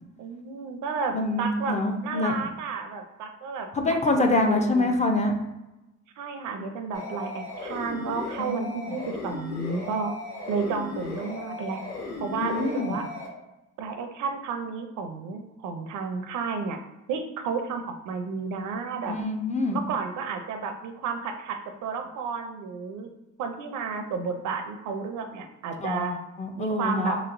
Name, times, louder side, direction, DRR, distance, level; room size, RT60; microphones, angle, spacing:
voice 1, 0.2-4.9 6.2-10.1 10.5-11.8 12.2-13.1 13.8-16.8 17.1-19.2 19.7-23.1 23.4-26.1 26.6-27.2, right 5 dB, 80° right, 6 dB, 0.5 m, -32 dB
voice 2, 1.1-2.3 3.7-5.3 8.4-8.8 12.4-13.0 19.0-19.8 25.8-27.2, left 2 dB, 25° left, 3 dB, 0.5 m, -25 dB
sound 1, 6.9-13.3, left 2 dB, 55° left, 1.3 m, -37 dB
3.1 x 3.0 x 2.5 m, 0.98 s
cardioid pair, 90°, 30 cm